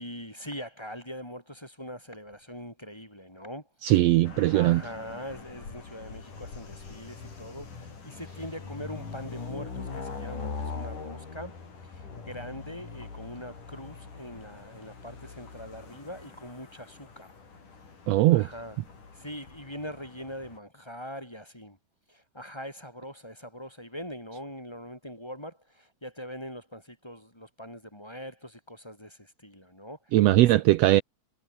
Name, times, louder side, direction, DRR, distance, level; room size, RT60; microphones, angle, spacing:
voice 1, 0.0-3.7 4.5-17.3 18.3-18.8 19.1-21.8 22.1-30.6, equal, 10° left, 4.1 m, -42 dB
voice 2, 3.8-4.8 18.1-18.5 30.1-31.0, right 16 dB, 80° right, 1.5 m, -20 dB
sound 1, 4.2-20.6, left 4 dB, 85° left, 7.2 m, -42 dB
omnidirectional pair, 3.5 m